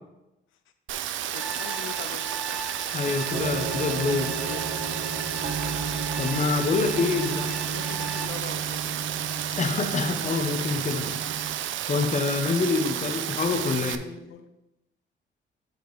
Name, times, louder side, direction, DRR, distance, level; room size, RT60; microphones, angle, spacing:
Rain, 0.9-14.0, right 11 dB, 75° right, 0.4 m, -32 dB
voice 1, 1.3-2.3 4.5-4.9 6.7-8.9 10.9-11.1 13.9-14.5, left 8 dB, 85° left, 9 dB, 0.7 m, -42 dB
sound 1, 1.3-8.3, right 2 dB, 5° right, 0.6 m, -39 dB
voice 2, 2.9-4.4 6.2-7.4 9.6-11.2 11.9-14.0, left 4 dB, 40° left, 6 dB, 0.9 m, -26 dB
sound 2, 3.3-11.6, right 5 dB, 45° right, 0.8 m, -34 dB
6.6 x 5.3 x 4.0 m, 0.94 s
cardioid pair, 90°, 20 cm